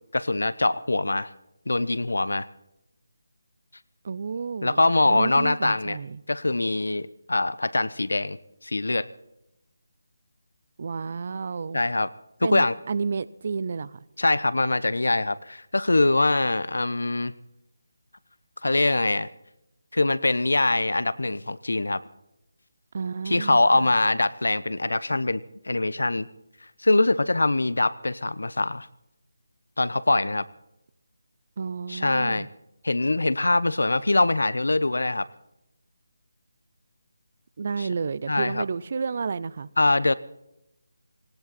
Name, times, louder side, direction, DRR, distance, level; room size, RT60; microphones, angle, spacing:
voice 1, 0.1-1.3 1.7-2.5 4.6-6.0 6.3-8.4 8.6-9.1 11.7-12.1 12.4-12.7 14.2-17.3 18.6-19.3 19.9-22.0 23.3-26.3 26.8-28.9 29.8-30.5 31.9-32.5 32.8-35.3 38.3-38.6 39.8-40.1, left 2 dB, 70° left, 0.8 m, -23 dB
voice 2, 4.0-6.2 10.8-11.8 12.4-14.0 22.9-23.9 31.6-32.5 37.6-39.7, right 5 dB, 45° right, 0.6 m, -31 dB
18.5 x 17.5 x 4.2 m
figure-of-eight pair, 155°, 0 cm